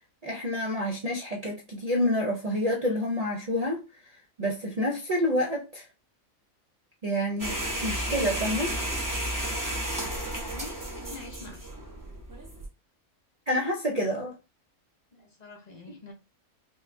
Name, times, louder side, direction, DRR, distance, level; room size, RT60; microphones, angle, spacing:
voice 1, 0.2-5.9 7.0-8.8 10.3-10.4 13.5-14.3 15.9-16.0, left 1 dB, 55° right, 0.4 m, -29 dB
sound 1, 7.4-12.7, right 1 dB, 15° right, 0.8 m, -32 dB
voice 2, 10.4-11.7 15.1-16.1, left 3 dB, 40° left, 0.7 m, -46 dB
4.7 x 2.2 x 2.6 m
omnidirectional pair, 1.5 m